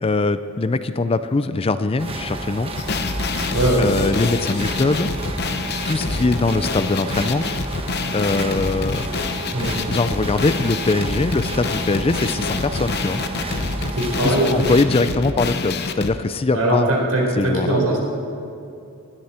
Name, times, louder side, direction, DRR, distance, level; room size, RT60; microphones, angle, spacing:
voice 1, 0.0-2.7 3.8-5.1 5.9-7.5 8.1-9.0 9.9-13.2 14.2-16.9 17.4-17.8, left 3 dB, 25° left, 12 dB, 0.4 m, -21 dB
sound 1, 2.0-14.9, right 2 dB, 25° right, 1.2 m, -32 dB
sound 2, 2.8-16.1, left 3 dB, 45° left, 0.9 m, -26 dB
voice 2, 3.5-3.9 9.5-9.8 14.0-14.6 16.5-18.0, right 1 dB, 75° right, -1 dB, 4.2 m, -20 dB
20.0 x 13.5 x 4.4 m, 2.6 s
head